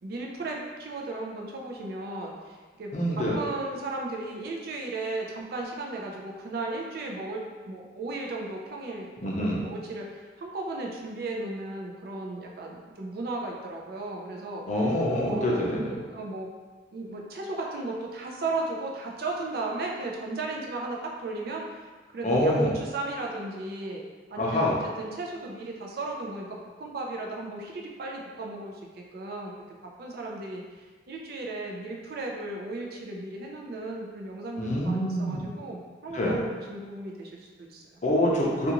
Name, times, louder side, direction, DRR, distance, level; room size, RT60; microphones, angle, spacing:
voice 1, 0.0-9.1 9.6-14.7 15.2-16.5 16.9-21.6 22.1-24.0 24.3-29.5 30.0-37.8, right 2 dB, 55° right, -1 dB, 0.4 m, -35 dB
voice 2, 2.9-3.4 9.2-9.6 14.7-15.9 22.2-22.7 24.4-24.7 34.6-35.4 36.1-36.4 38.0-38.7, left 1 dB, 40° left, -3 dB, 0.5 m, -25 dB
2.5 x 2.3 x 2.9 m, 1.4 s
head